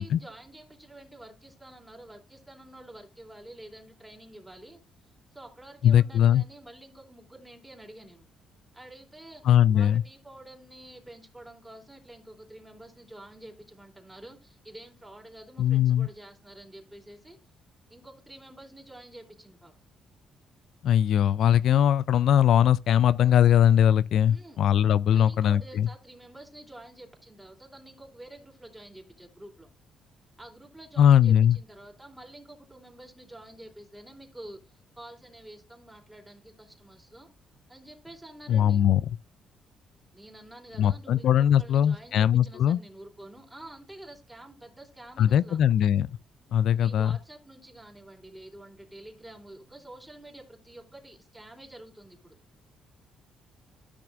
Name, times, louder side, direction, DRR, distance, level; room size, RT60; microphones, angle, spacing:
voice 1, 0.0-4.8 5.3-8.3 8.7-9.4 9.7-17.4 17.9-19.7 24.3-24.6 25.1-29.7 30.4-37.3 37.7-38.8 40.1-45.6 46.8-52.3, right 1 dB, 10° right, 2.9 m, -48 dB
voice 2, 5.8-6.4 9.4-10.0 15.6-16.1 20.8-25.9 31.0-31.6 38.5-39.0 40.8-42.8 45.2-46.1 46.5-47.1, left 10 dB, 70° left, 0.3 m, -21 dB
13.5 x 6.0 x 2.4 m
cardioid pair, 90°, 0 cm